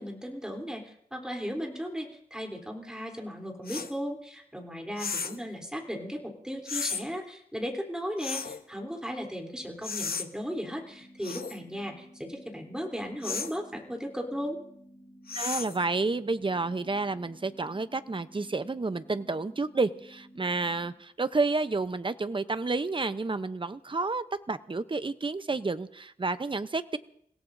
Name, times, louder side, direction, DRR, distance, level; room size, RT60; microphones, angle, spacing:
voice 1, 0.0-14.6, equal, 5° right, 1 dB, 3.4 m, -36 dB
sound 1, 3.7-3.9 5.0-5.4 6.7-7.0 8.2-8.6 9.8-10.3 11.2-11.6 13.2-13.6 15.3-15.8, left 5 dB, 80° left, 0.9 m, -34 dB
sound 2, 10.9-20.9, equal, 20° left, 6.2 m, -54 dB
voice 2, 15.3-27.0, right 3 dB, 35° right, 12 dB, 0.7 m, -30 dB
29.5 x 17.0 x 2.7 m, 0.66 s
wide cardioid pair, 90°, 15 cm